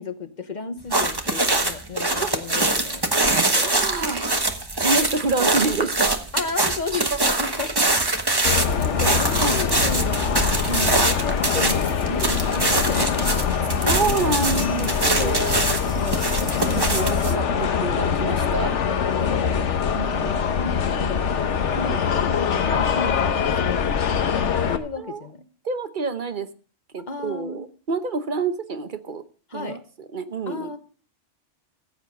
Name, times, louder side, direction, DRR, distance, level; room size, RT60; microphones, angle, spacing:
voice 1, 0.0-3.7 6.3-7.7 8.3-13.3 14.5-16.8 18.9-21.5 21.8-23.9 24.7-25.4 27.1-27.7 29.5-29.8 30.5-30.8, left 4 dB, 40° left, 9 dB, 1.2 m, -34 dB
sound 1, 0.9-17.3, right 2 dB, 20° right, 1.2 m, -23 dB
voice 2, 3.6-4.3 4.8-6.2 6.9-7.2 9.4-9.6 10.7-10.9 12.1-12.3 13.7-15.7 16.7-18.8 19.9-20.4 21.8-22.0 25.0-25.2 25.6-26.5 26.9-29.2 29.5-29.8 30.1-30.7, right 4 dB, 50° right, 10 dB, 1.0 m, -28 dB
sound 2, 8.4-24.8, left 7 dB, 85° left, 1.3 m, -23 dB
15.0 x 8.1 x 5.3 m, 0.41 s
omnidirectional pair, 1.2 m